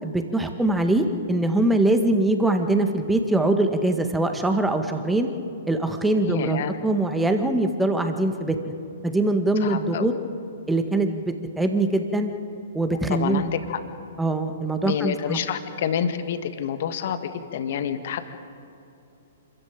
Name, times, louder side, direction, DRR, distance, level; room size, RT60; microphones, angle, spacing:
voice 1, 0.0-5.3 5.7-8.6 9.0-10.1 10.7-11.2 11.6-12.3 12.7-13.4 14.2-15.4, right 2 dB, 5° right, 6 dB, 1.9 m, -22 dB
voice 2, 6.2-6.7 9.6-10.1 13.1-13.8 14.8-18.3, left 8 dB, 55° left, 9 dB, 1.7 m, -28 dB
26.5 x 14.0 x 9.0 m, 2.8 s
figure-of-eight pair, 120°, 0 cm